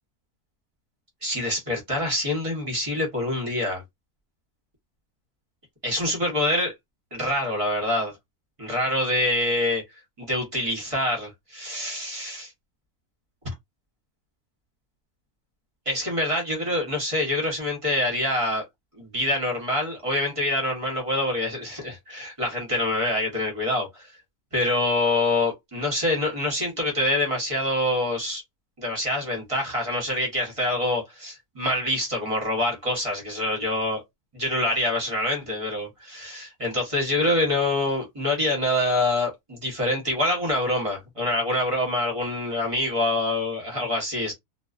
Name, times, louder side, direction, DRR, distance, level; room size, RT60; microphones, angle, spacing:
voice 1, 1.2-3.8 5.8-6.7 7.1-8.2 8.6-9.8 10.2-12.5 13.4-13.5 15.9-18.6 18.9-24.1 24.5-28.4 28.8-34.0 34.3-44.3, left 1 dB, 25° right, 0.8 m, -26 dB
2.3 x 2.3 x 2.4 m
omnidirectional pair, 1.6 m